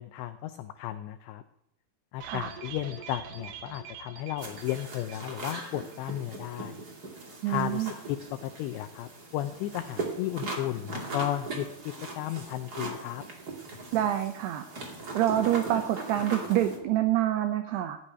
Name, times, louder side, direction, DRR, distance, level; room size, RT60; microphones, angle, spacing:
voice 1, 0.0-1.4 2.1-6.8 7.5-13.2, left 13 dB, 85° left, 10 dB, 2.5 m, -34 dB
sound 1, 2.2-5.7 5.9-6.0 6.3-6.4, right 7 dB, 65° right, 3.0 m, -45 dB
sound 2, 4.4-16.8, right 3 dB, 40° right, 1.3 m, -39 dB
voice 2, 7.4-7.9 13.9-14.6 15.1-18.0, right 12 dB, 85° right, 8 dB, 2.3 m, -27 dB
16.5 x 7.0 x 9.7 m, 0.80 s
omnidirectional pair, 5.8 m